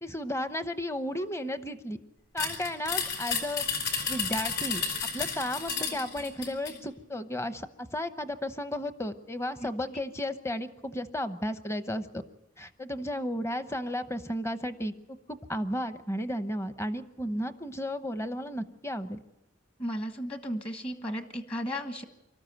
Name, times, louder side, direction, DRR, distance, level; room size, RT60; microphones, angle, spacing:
voice 1, 0.0-2.0 2.3-3.7 4.1-4.8 5.1-12.2 12.6-19.2, left 1 dB, 15° left, 10 dB, 0.9 m, -34 dB
sound 1, 2.4-6.8, left 5 dB, 55° left, 4.8 m, -32 dB
voice 2, 19.8-22.0, equal, 30° left, 7 dB, 1.4 m, -34 dB
24.5 x 13.5 x 9.2 m, 0.93 s
head